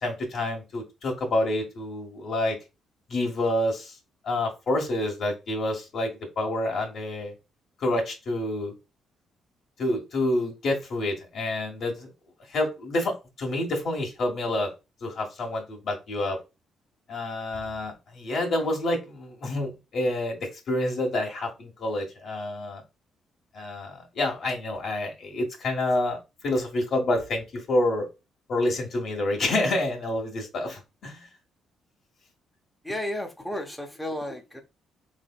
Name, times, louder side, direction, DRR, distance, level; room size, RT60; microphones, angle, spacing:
voice 1, 0.0-2.6 3.1-4.0 4.2-7.3 7.8-8.7 9.8-12.1 12.5-14.7 15.0-16.4 17.1-22.8 23.5-28.1 28.5-31.3, left 1 dB, 60° left, 1.5 m, -28 dB
voice 2, 32.8-34.6, left 1 dB, 5° left, 0.7 m, -33 dB
3.4 x 3.3 x 2.3 m
cardioid pair, 90°, 0 cm